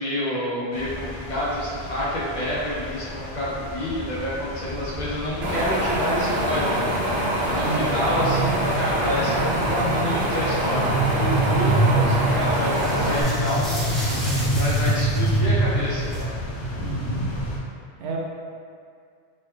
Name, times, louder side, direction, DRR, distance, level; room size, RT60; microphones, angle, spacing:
voice 1, 0.0-6.8 7.4-14.0 14.6-16.3, left 1 dB, 45° left, -7 dB, 0.7 m, -28 dB
sound 1, 0.7-17.6, right 1 dB, 90° left, 1.0 m, -27 dB
Wind, 5.4-13.2, right 1 dB, 60° right, 0.7 m, -25 dB
sound 2, 7.0-10.3 10.9-11.9 12.2-16.2, equal, ahead, 0.4 m, -36 dB
voice 2, 16.8-17.2 18.0-18.2, right 3 dB, 90° right, -2 dB, 0.9 m, -30 dB
3.2 x 3.0 x 3.1 m, 2.2 s
omnidirectional pair, 1.1 m